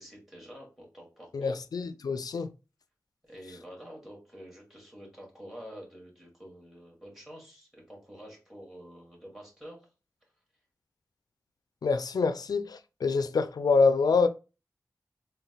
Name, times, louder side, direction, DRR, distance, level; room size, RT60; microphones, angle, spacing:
voice 1, 0.0-1.6 3.2-9.8 13.1-13.2, equal, 5° right, 2.1 m, -48 dB
voice 2, 1.3-2.5 11.8-14.3, left 4 dB, 90° left, 0.3 m, -26 dB
4.0 x 2.2 x 3.9 m
cardioid pair, 45°, 6 cm